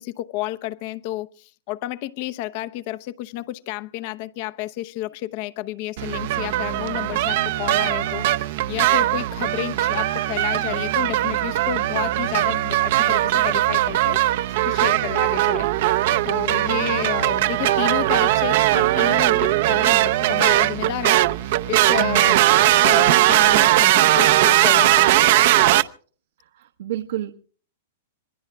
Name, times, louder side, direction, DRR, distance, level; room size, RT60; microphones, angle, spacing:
voice 1, 0.0-14.2 14.6-15.7 16.2-22.3 22.6-25.9, left 15 dB, 45° left, 0.8 m, -31 dB
sound 1, 6.0-25.8, right 15 dB, 55° right, 0.7 m, -19 dB
voice 2, 22.0-22.4 26.5-27.4, right 12 dB, 70° right, 1.2 m, -29 dB
26.5 x 21.5 x 2.3 m
hypercardioid pair, 155°, 0 cm